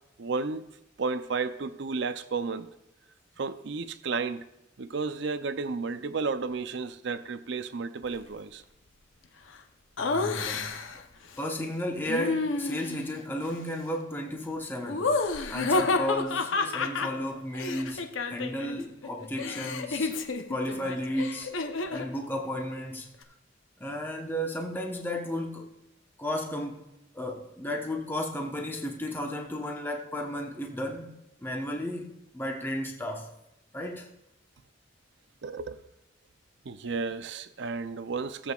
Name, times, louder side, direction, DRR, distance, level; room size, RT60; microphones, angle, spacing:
voice 1, 0.2-0.7 1.0-2.7 3.4-4.5 4.8-8.6 35.4-35.8 36.6-38.5, right 4 dB, 60° right, 0.5 m, -32 dB
Laughter, 10.0-11.0 12.0-13.1 14.9-18.8 19.0-22.1, left 3 dB, 75° left, 0.8 m, -30 dB
voice 2, 10.0-10.8 11.4-15.1 15.5-20.1 20.5-21.6 21.9-23.2 23.8-25.7 26.2-26.9 27.1-33.3 33.7-34.1, left 1 dB, 10° left, 1.0 m, -34 dB
17.0 x 7.8 x 2.4 m
head